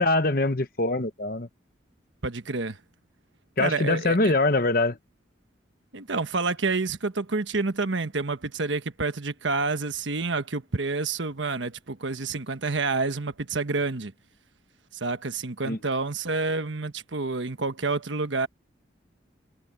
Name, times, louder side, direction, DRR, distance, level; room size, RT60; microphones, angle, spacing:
voice 1, 0.0-1.5 3.6-5.0 15.6-15.8, left 2 dB, 50° left, 1.1 m, -23 dB
voice 2, 2.2-2.8 3.6-4.3 5.9-14.1 14.9-18.5, right 3 dB, 75° right, 1.3 m, -28 dB
head